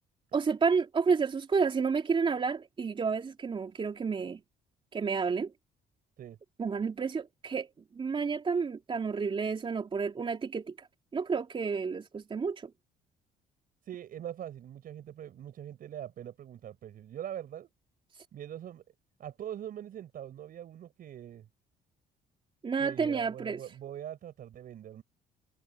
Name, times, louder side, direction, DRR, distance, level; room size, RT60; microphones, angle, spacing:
voice 1, 0.3-4.4 4.9-5.5 6.6-7.7 8.0-10.9 11.1-12.7 22.6-23.6, right 5 dB, 30° right, 3.5 m, -30 dB
voice 2, 13.8-17.7 18.3-18.8 19.2-21.5 22.8-25.0, right 10 dB, 60° right, 7.4 m, -42 dB
cardioid pair, 110°, 17 cm